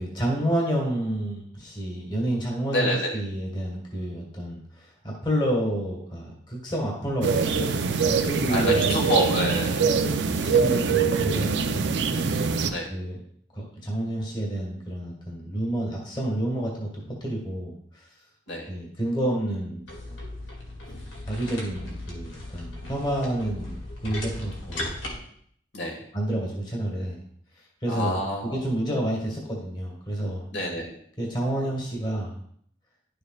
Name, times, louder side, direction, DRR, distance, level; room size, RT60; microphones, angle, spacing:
voice 1, 0.0-8.9 10.4-11.9 12.9-13.2 13.5-18.1 18.7-20.2 21.2-25.0 26.1-27.2 27.5-30.5 31.2-32.4, right 1 dB, 25° left, -2 dB, 1.6 m, -29 dB
voice 2, 2.7-3.2 8.5-9.8 12.7-12.9 18.5-18.7 25.7-26.0 27.9-28.6 30.5-30.9, equal, 60° left, 0 dB, 1.8 m, -27 dB
sound 1, 7.2-12.7, right 5 dB, 65° right, 0.5 m, -23 dB
sound 2, 19.9-25.2, left 1 dB, 80° left, 2.1 m, -37 dB
11.0 x 6.7 x 2.4 m, 0.64 s
head